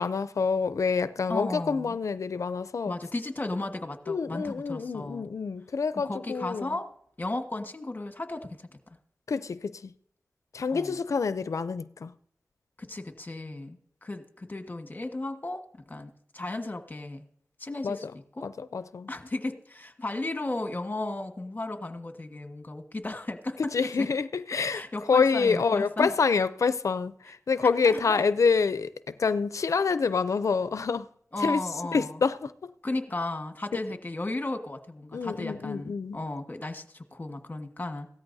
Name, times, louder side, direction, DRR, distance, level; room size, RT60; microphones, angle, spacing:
voice 1, 0.0-3.0 4.1-6.8 9.3-9.9 10.5-12.1 17.8-18.1 18.4-19.1 23.7-24.8 25.1-31.1 31.4-31.6 31.9-32.7 35.1-36.2, left 5 dB, 80° left, 0.5 m, -27 dB
voice 2, 1.3-2.0 2.8-5.3 6.0-6.9 7.2-8.8 10.7-11.0 12.8-17.2 17.6-18.5 19.1-24.1 24.7-26.1 27.2-27.3 27.6-28.2 31.3-32.2 32.8-38.1, left 2 dB, 35° left, 1.5 m, -35 dB
17.0 x 13.5 x 2.7 m
cardioid pair, 50°, 5 cm